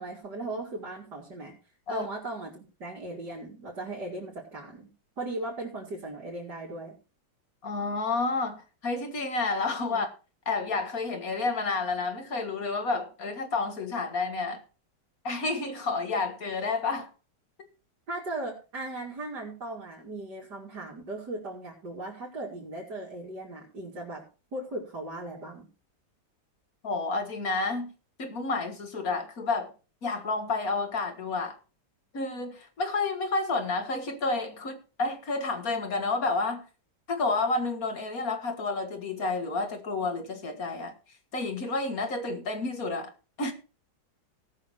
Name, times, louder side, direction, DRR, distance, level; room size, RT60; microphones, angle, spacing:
voice 1, 0.0-1.6 1.9-4.9 5.2-6.9 9.9-10.0 18.1-24.3 24.5-25.7, right 2 dB, 65° right, 3.3 m, -37 dB
voice 2, 7.6-10.1 10.5-14.6 15.2-17.1 26.8-27.9 28.2-29.7 30.0-31.6 32.1-36.6 37.1-40.9 41.3-43.1 43.4-43.5, left 3 dB, 50° left, 2.0 m, -30 dB
18.0 x 6.4 x 4.4 m
omnidirectional pair, 1.9 m